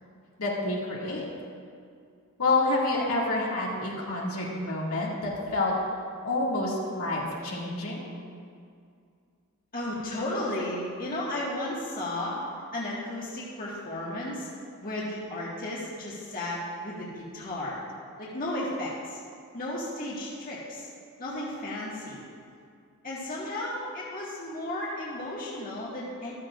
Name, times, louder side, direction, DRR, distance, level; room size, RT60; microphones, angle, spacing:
voice 1, 0.4-1.3 2.4-5.7 6.2-8.1, left 2 dB, 75° left, -4 dB, 2.3 m, -28 dB
voice 2, 9.7-12.5 12.7-14.5 14.8-17.8 18.2-19.2 19.5-20.9 21.2-22.2 23.0-26.3, left 1 dB, 40° left, -6 dB, 1.8 m, -34 dB
14.0 x 13.0 x 2.6 m, 2.3 s
head